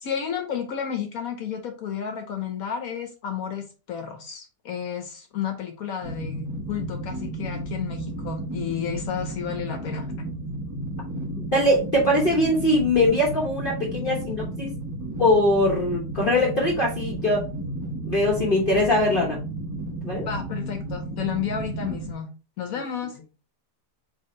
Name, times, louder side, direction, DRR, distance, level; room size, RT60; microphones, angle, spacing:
voice 1, 0.0-10.1 20.2-22.3 22.6-23.2, left 8 dB, 65° left, 5 dB, 1.1 m, -32 dB
sound 1, 6.0-22.1, right 1 dB, 20° right, 0.4 m, -33 dB
voice 2, 11.4-14.7 15.2-17.4 18.0-19.4 20.0-20.3, left 1 dB, 40° left, -4 dB, 1.0 m, -22 dB
4.2 x 2.7 x 4.2 m, 0.34 s
omnidirectional pair, 1.7 m